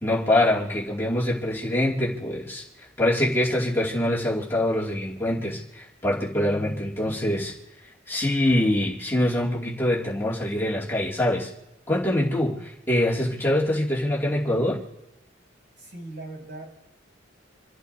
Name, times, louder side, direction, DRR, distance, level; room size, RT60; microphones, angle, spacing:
voice 1, 0.0-7.5 8.1-11.5 11.9-14.8, left 1 dB, 10° left, -5 dB, 2.4 m, -24 dB
voice 2, 15.8-16.7, right 2 dB, 60° right, -3 dB, 6.8 m, -39 dB
28.0 x 13.5 x 2.7 m, 0.94 s
head